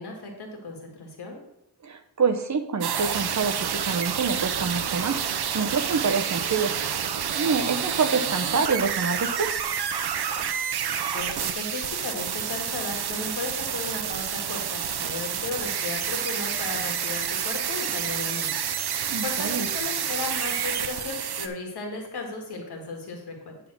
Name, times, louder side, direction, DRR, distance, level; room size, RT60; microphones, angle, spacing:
voice 1, 0.0-1.4 11.1-18.5 18.8-23.6, left 3 dB, 80° left, 1 dB, 1.9 m, -35 dB
voice 2, 1.8-5.2 5.5-6.7 7.3-9.5 19.1-19.7, right 5 dB, 45° right, 8 dB, 0.8 m, -26 dB
sound 1, 2.8-21.5, right 8 dB, 75° right, 0.7 m, -29 dB
9.4 x 3.8 x 6.1 m, 0.83 s
wide cardioid pair, 100°, 39 cm